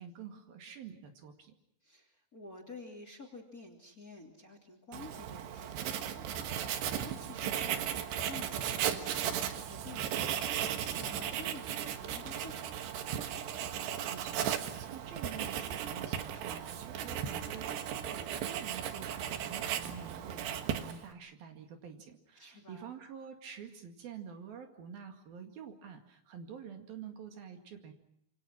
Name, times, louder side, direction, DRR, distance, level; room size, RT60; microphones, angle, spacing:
voice 1, 0.0-1.5 14.0-27.9, right 7 dB, 65° right, 5 dB, 3.8 m, -48 dB
voice 2, 1.8-13.0 22.4-22.9, left 3 dB, 25° left, 3 dB, 2.7 m, -51 dB
Writing, 4.9-21.1, right 9 dB, 85° right, 3.6 m, -36 dB
27.0 x 26.0 x 6.1 m, 0.74 s
omnidirectional pair, 4.8 m